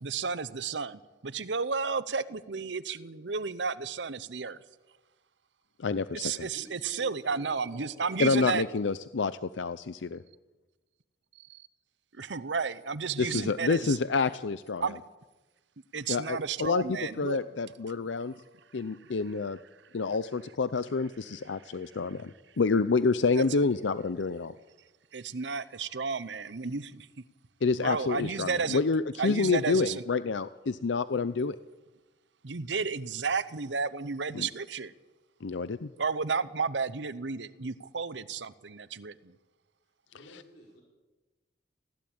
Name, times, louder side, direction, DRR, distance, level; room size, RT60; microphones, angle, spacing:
voice 1, 0.0-4.6 6.1-8.6 11.3-11.7 12.1-14.0 14.8-15.0 15.9-17.4 19.0-19.1 19.8-20.0 21.6-22.0 23.3-23.6 25.1-27.2 27.7-28.8 29.2-30.0 32.4-34.9 36.0-39.3, right 5 dB, 75° right, 15 dB, 0.9 m, -33 dB
voice 2, 5.8-6.2 8.2-10.2 13.2-14.8 16.1-18.3 18.7-19.6 19.9-24.5 27.6-31.6 34.3-34.5 35.4-35.9, left 4 dB, 80° left, 14 dB, 0.6 m, -28 dB
voice 3, 6.5-8.6 40.1-40.8, equal, 60° left, -1 dB, 4.7 m, -51 dB
20.0 x 15.5 x 8.8 m, 1.2 s
head